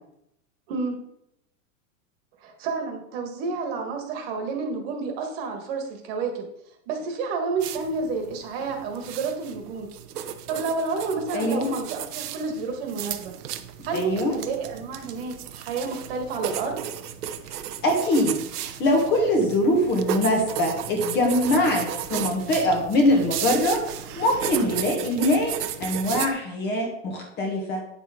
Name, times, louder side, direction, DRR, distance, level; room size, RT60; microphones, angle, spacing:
voice 1, 2.4-6.5 6.9-9.9 10.5-13.3 13.8-16.7, right 4 dB, 40° right, 4 dB, 1.7 m, -30 dB
sound 1, 7.6-26.3, right 10 dB, 85° right, 1.0 m, -34 dB
voice 2, 11.3-11.7 13.9-14.4 17.8-27.8, left 1 dB, 20° left, 2 dB, 1.5 m, -23 dB
9.5 x 6.8 x 3.7 m, 0.77 s
supercardioid pair, 160°, 45 cm